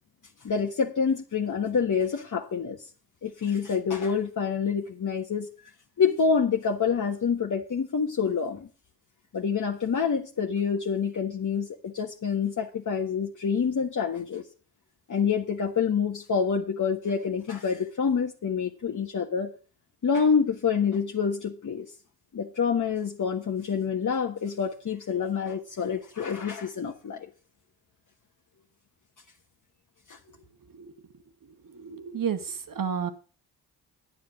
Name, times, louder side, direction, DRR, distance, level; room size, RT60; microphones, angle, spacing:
voice 1, 0.4-2.8 3.2-5.5 6.0-8.7 9.3-14.5 15.1-19.5 20.0-21.9 22.3-27.3 30.1-30.2, left 6 dB, 45° left, 2 dB, 1.5 m, -27 dB
voice 2, 31.7-33.1, right 7 dB, 45° right, 10 dB, 1.8 m, -31 dB
9.5 x 8.6 x 6.1 m, 0.38 s
supercardioid pair, 50°, 44 cm